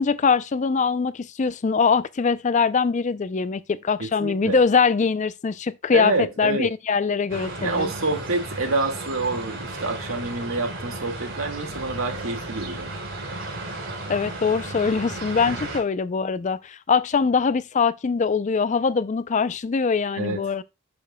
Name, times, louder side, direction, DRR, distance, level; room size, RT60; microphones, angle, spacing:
voice 1, 0.0-7.9 14.1-20.6, left 5 dB, 35° left, 0.4 m, -22 dB
voice 2, 4.0-4.6 5.9-6.7 7.6-12.9 20.2-20.4, right 3 dB, 90° right, 2.0 m, -27 dB
sound 1, 7.3-15.8, right 2 dB, 65° right, 3.2 m, -34 dB
10.0 x 6.9 x 2.2 m
head